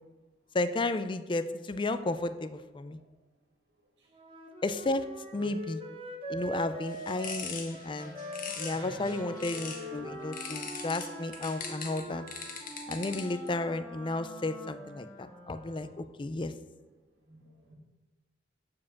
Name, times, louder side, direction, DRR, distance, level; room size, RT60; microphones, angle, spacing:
voice 1, 0.5-3.0 4.6-5.1 5.3-5.8 6.3-8.1 8.6-12.3 12.9-16.5, left 2 dB, 30° left, 12 dB, 0.4 m, -33 dB
Wind instrument woodwind instrument, 4.1-11.4, equal, 30° right, 1.0 m, -42 dB
sound 1, 6.9-9.9 10.3-13.5, left 5 dB, 50° left, 1.3 m, -41 dB
Wind instrument woodwind instrument 2, 7.9-16.1, right 1 dB, 5° left, 1.8 m, -47 dB
voice 2, 8.7-9.1 15.9-16.1 17.3-17.7, right 1 dB, 80° right, -1 dB, 2.5 m, -52 dB
7.4 x 4.7 x 7.1 m, 1.2 s
head